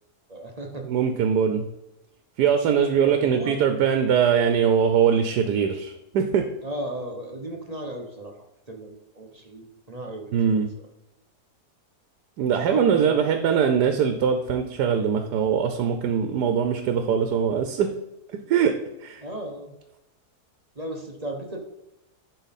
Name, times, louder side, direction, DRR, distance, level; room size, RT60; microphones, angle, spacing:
voice 1, 0.3-0.9 3.0-3.7 6.6-8.4 8.7-10.9 12.5-13.3 19.2-19.7 20.7-21.6, right 1 dB, 30° right, 1 dB, 0.9 m, -35 dB
voice 2, 0.9-1.7 2.4-6.5 10.3-10.7 12.4-18.0 18.3-19.2, right 7 dB, 85° right, 7 dB, 1.2 m, -22 dB
10.5 x 4.5 x 4.1 m, 0.91 s
omnidirectional pair, 1.7 m